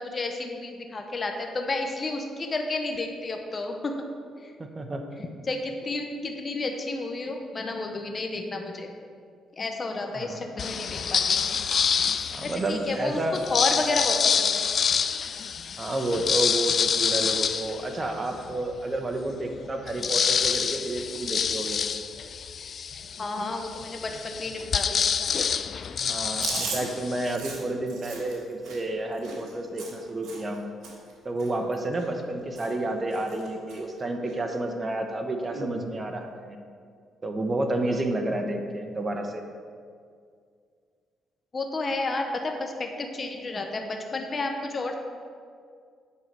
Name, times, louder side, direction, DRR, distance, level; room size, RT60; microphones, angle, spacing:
voice 1, 0.0-4.0 5.5-8.9 9.6-11.4 12.4-13.2 13.5-14.7 23.2-25.4 41.5-44.9, left 2 dB, 35° left, 3 dB, 0.8 m, -31 dB
voice 2, 4.6-5.0 10.1-10.6 12.3-13.4 15.8-21.8 26.0-30.7 31.2-36.6 37.2-39.4, right 1 dB, 30° right, 5 dB, 1.0 m, -30 dB
sound 1, 10.6-12.7 13.3-18.5 19.0-19.1 19.3-27.4, left 7 dB, 50° left, 0.3 m, -27 dB
Chewing mastication, 26.3-30.6 30.8-31.1 31.4-32.3 32.5-32.9 33.1-33.8 34.2-34.4 35.4-35.8, right 3 dB, 80° right, 1.6 m, -37 dB
8.5 x 5.7 x 4.7 m, 2.2 s
cardioid pair, 90°, 0 cm